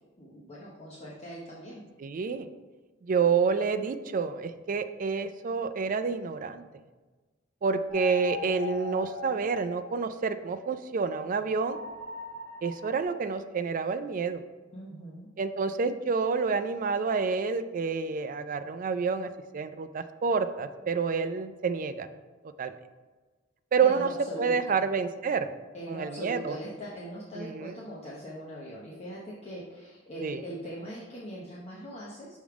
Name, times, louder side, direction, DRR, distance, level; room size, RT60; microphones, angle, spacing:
voice 1, 0.2-1.8 14.7-15.3 23.8-24.8 25.7-32.4, equal, 35° left, -5 dB, 0.8 m, -41 dB
voice 2, 2.0-2.5 3.0-6.6 7.6-11.8 12.6-14.4 15.4-22.1 22.6-22.7 23.7-24.1 24.4-25.5 25.9-26.6 27.3-27.7 30.2-30.4, right 5 dB, 45° right, 10 dB, 0.4 m, -28 dB
sound 1, 7.9-10.5 11.7-13.0, left 3 dB, 60° right, 1.4 m, -41 dB
6.2 x 3.6 x 4.7 m, 1.3 s
head